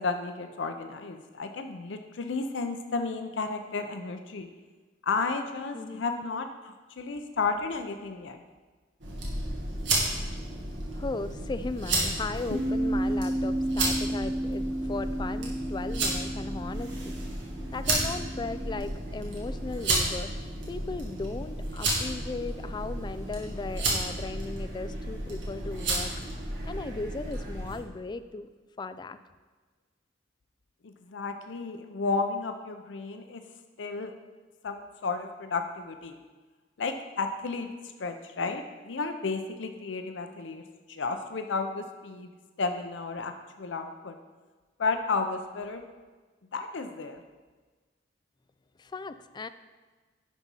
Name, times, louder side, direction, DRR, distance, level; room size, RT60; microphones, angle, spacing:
voice 1, 0.0-4.5 5.0-8.4 30.8-33.4 33.8-34.1 34.6-36.2 36.8-37.7 38.0-40.6 40.9-42.3 42.6-44.1 44.8-45.8 46.5-47.2, left 4 dB, 70° left, 6 dB, 0.6 m, -32 dB
voice 2, 5.7-6.1 11.0-17.2 17.7-26.1 26.7-28.5 28.8-29.2 48.8-49.5, left 3 dB, 25° left, 11 dB, 0.3 m, -37 dB
sound 1, 9.0-27.8, right 2 dB, 70° right, 1.9 m, -32 dB
Bass guitar, 12.5-18.8, right 1 dB, 55° left, 1.0 m, -32 dB
10.5 x 4.1 x 5.4 m, 1.3 s
head